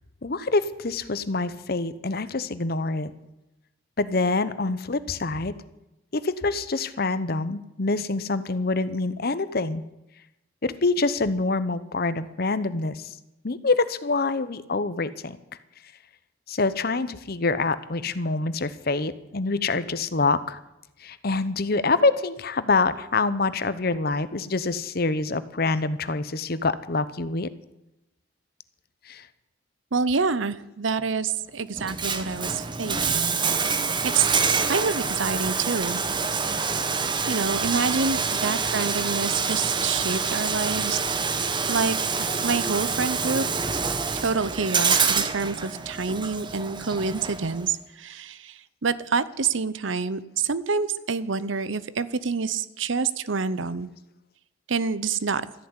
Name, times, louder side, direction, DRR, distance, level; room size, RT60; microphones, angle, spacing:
voice 1, 0.2-3.1 4.0-5.5 6.1-9.8 10.6-13.1 13.4-15.4 16.5-20.6 21.0-27.5 29.1-29.2 38.4-38.6, left 3 dB, 50° left, 14 dB, 0.9 m, -26 dB
voice 2, 29.9-33.4 34.0-34.3 34.6-36.0 37.3-41.0 41.7-43.5 44.1-53.9 54.7-55.5, right 5 dB, 75° right, 16 dB, 0.8 m, -27 dB
Bathtub (filling or washing), 31.8-47.7, right 5 dB, 25° right, 1.1 m, -26 dB
14.0 x 10.5 x 9.8 m, 0.91 s
head